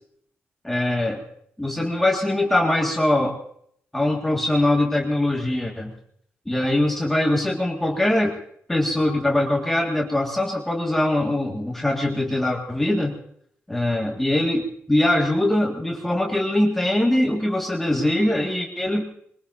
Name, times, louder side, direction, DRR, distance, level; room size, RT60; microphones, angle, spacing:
voice 1, 0.6-1.2 1.6-3.4 3.9-5.9 6.5-8.4 8.7-13.2 13.7-14.6 14.9-19.0, left 1 dB, 5° left, 0 dB, 2.1 m, -22 dB
23.0 x 22.0 x 2.8 m, 0.66 s
wide cardioid pair, 175°, 5 cm